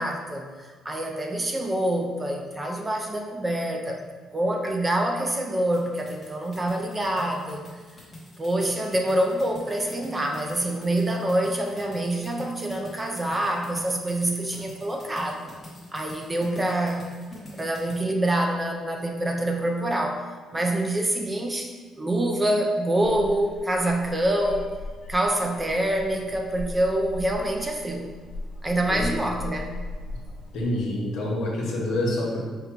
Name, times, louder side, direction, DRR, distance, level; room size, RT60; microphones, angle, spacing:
voice 1, 0.0-4.1 4.3-7.6 8.4-15.5 15.9-17.0 17.5-20.2 20.5-24.7 25.1-28.1 28.6-29.7, right 1 dB, 15° right, 2 dB, 0.3 m, -26 dB
sound 1, 5.7-18.0, left 1 dB, 15° left, 1.0 m, -44 dB
sound 2, 23.0-30.8, left 2 dB, 50° left, 0.6 m, -38 dB
voice 2, 30.5-32.4, left 1 dB, 70° left, -2 dB, 1.1 m, -27 dB
5.1 x 2.2 x 4.5 m, 1.4 s
cardioid pair, 170°, 0 cm